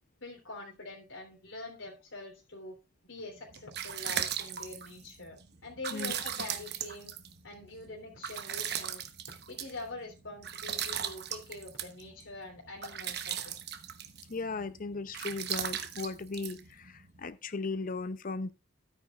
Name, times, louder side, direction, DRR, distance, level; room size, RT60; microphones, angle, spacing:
voice 1, 0.2-2.8 3.0-7.1 7.4-9.0 9.5-13.6, left 2 dB, 85° left, 3.4 m, -45 dB
sound 1, 3.3-17.3, right 9 dB, 55° right, 1.0 m, -39 dB
voice 2, 14.3-18.5, left 3 dB, 45° left, 0.6 m, -37 dB
12.5 x 9.3 x 2.4 m
head